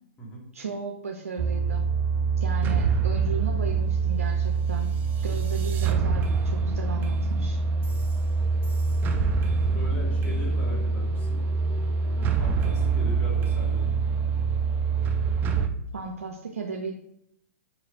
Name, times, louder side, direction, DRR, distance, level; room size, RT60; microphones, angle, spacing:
voice 1, 0.5-1.9 2.4-4.9 5.2-7.6 15.9-16.9, right 4 dB, 90° right, 2 dB, 0.4 m, -35 dB
sound 1, 1.4-15.7, right 4 dB, 25° right, 0.4 m, -25 dB
voice 2, 9.7-11.5 12.1-13.9, equal, 20° left, -3 dB, 1.4 m, -39 dB
4.8 x 3.1 x 2.4 m, 0.72 s
hypercardioid pair, 120°, 8 cm